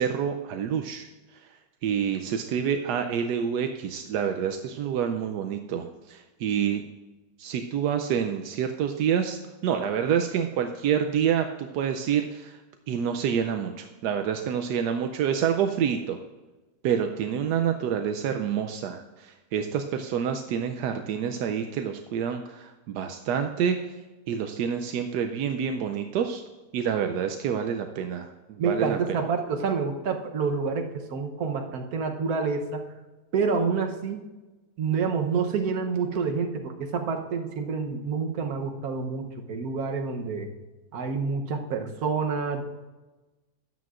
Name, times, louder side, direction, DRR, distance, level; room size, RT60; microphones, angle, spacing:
voice 1, 0.0-1.4 1.8-6.8 7.4-12.6 12.9-16.2 16.8-23.8 24.3-26.4 26.7-29.0, right 8 dB, 85° right, 6 dB, 1.2 m, -27 dB
voice 2, 28.6-32.8 33.3-34.2 34.8-40.5 40.9-42.6, right 5 dB, 65° right, 4 dB, 1.4 m, -28 dB
13.5 x 9.4 x 2.5 m, 1.2 s
omnidirectional pair, 1.7 m